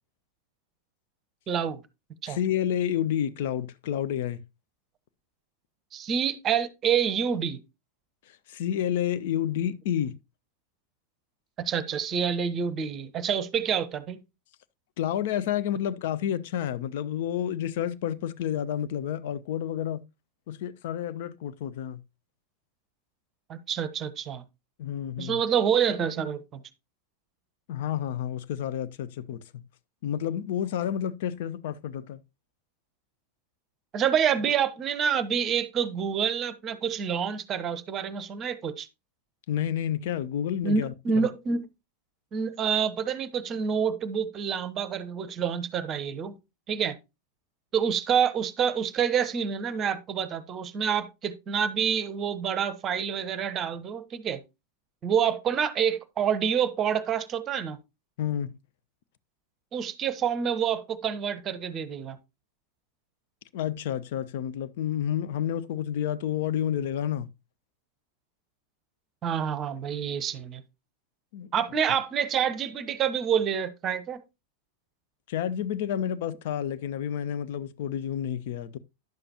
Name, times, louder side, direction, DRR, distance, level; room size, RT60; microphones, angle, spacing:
voice 1, 1.5-1.8 2.2-2.4 5.9-7.6 11.6-14.2 23.5-24.4 25.2-26.6 33.9-38.9 40.6-41.7 42.3-46.4 46.7-47.0 47.7-54.4 55.0-57.8 59.7-62.2 69.2-70.6 71.5-74.2, right 7 dB, 30° right, 0.8 m, -27 dB
voice 2, 2.3-4.4 8.3-10.1 15.0-20.0 20.5-22.0 24.8-25.4 27.7-29.6 30.0-32.2 39.5-40.9 58.2-58.6 63.5-67.3 71.3-71.5 75.3-78.8, left 10 dB, 50° left, 0.5 m, -30 dB
10.5 x 6.8 x 2.8 m
figure-of-eight pair, 90°, 0 cm